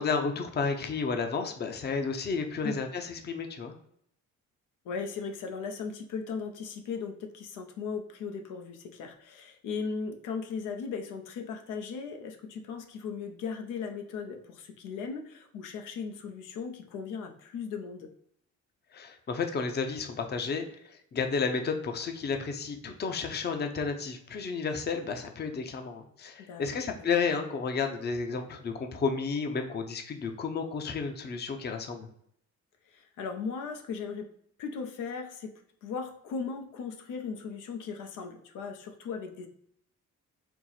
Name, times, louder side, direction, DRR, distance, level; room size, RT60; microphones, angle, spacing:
voice 1, 0.0-3.7 18.9-32.1, left 5 dB, 35° left, 5 dB, 0.6 m, -32 dB
voice 2, 4.8-18.1 26.4-26.6 27.0-27.1 32.9-34.3 34.6-39.5, left 5 dB, 90° left, 4 dB, 0.7 m, -37 dB
4.4 x 2.0 x 3.9 m, 0.68 s
cardioid pair, 90°, 30 cm